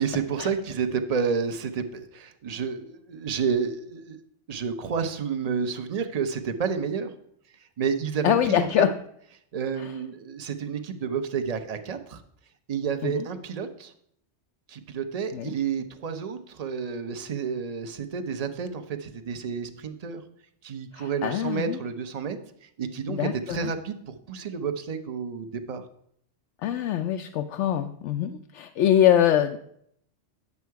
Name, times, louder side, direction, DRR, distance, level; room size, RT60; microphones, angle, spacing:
voice 1, 0.0-4.2 4.5-7.1 7.8-8.9 9.5-12.2 12.7-13.9 14.7-20.2 20.6-25.8, right 6 dB, 40° right, 8 dB, 0.7 m, -30 dB
voice 2, 8.2-8.9 9.8-9.9 13.0-13.3 15.3-15.5 21.0-21.8 23.1-23.7 26.6-29.6, left 10 dB, 85° left, 7 dB, 0.9 m, -24 dB
9.7 x 7.4 x 4.6 m, 0.71 s
omnidirectional pair, 1.2 m